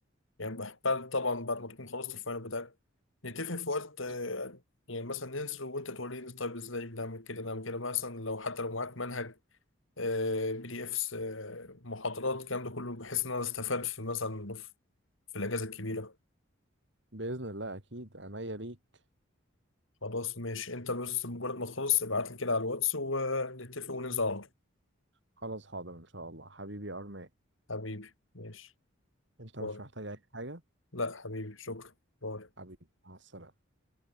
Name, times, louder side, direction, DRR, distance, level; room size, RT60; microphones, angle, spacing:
voice 1, 0.4-2.7 3.2-4.6 4.9-9.3 10.0-14.7 15.3-16.1 20.0-24.5 27.7-28.7 29.6-29.8 30.9-31.9 32.2-32.5, left 4 dB, 70° left, 4.3 m, -34 dB
voice 2, 17.1-18.8 25.4-27.3 29.4-30.6 32.6-32.8 33.1-33.5, right 1 dB, 55° right, 3.7 m, -41 dB
head